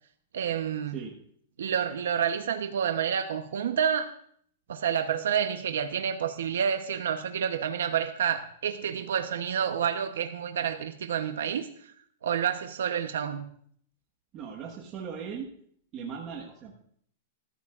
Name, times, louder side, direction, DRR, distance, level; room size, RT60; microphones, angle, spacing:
voice 1, 0.3-1.0 1.6-4.1 4.7-11.9 12.2-13.5, right 8 dB, 90° right, 7 dB, 0.9 m, -29 dB
voice 2, 14.3-15.5 15.9-16.7, right 6 dB, 25° right, -3 dB, 1.5 m, -38 dB
22.0 x 14.0 x 2.5 m, 0.63 s
supercardioid pair, 165°, 0 cm